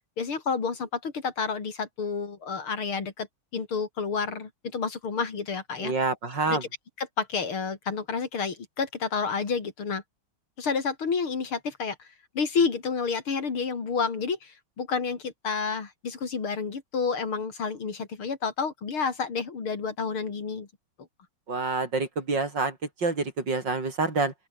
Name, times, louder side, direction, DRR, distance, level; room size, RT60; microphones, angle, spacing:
voice 1, 0.2-3.3 3.5-5.9 6.5-6.6 7.0-10.0 10.6-12.1 12.3-20.7, left 5 dB, 85° left, 4.0 m, -30 dB
voice 2, 5.8-6.6 21.5-24.3, right 3 dB, 55° right, 4.8 m, -27 dB
open air
omnidirectional pair, 2.3 m